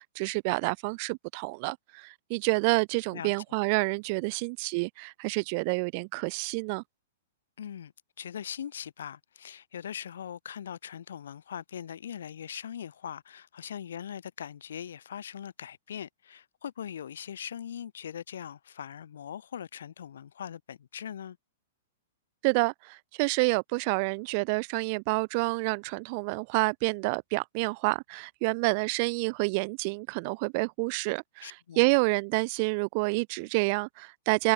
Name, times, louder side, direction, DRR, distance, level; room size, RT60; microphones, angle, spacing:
voice 1, 0.0-6.8 22.4-34.5, right 31 dB, 45° right, 0.3 m, -28 dB
voice 2, 7.6-21.4 31.4-31.8, left 9 dB, 65° left, 1.6 m, -41 dB
figure-of-eight pair, 110°, 0 cm